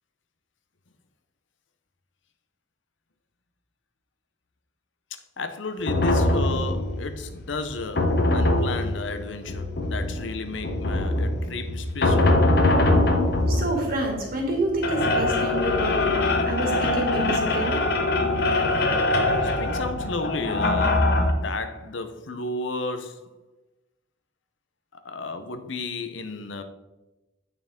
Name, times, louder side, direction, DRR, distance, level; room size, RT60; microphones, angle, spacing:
voice 1, 5.4-12.3 15.1-15.4 19.6-23.3 25.0-26.6, left 3 dB, 85° left, 0.8 m, -33 dB
sound 1, 5.9-21.3, left 2 dB, 55° left, 1.0 m, -23 dB
voice 2, 13.5-16.1 16.5-17.8, right 1 dB, 50° right, 2.3 m, -28 dB
8.9 x 6.1 x 3.7 m
head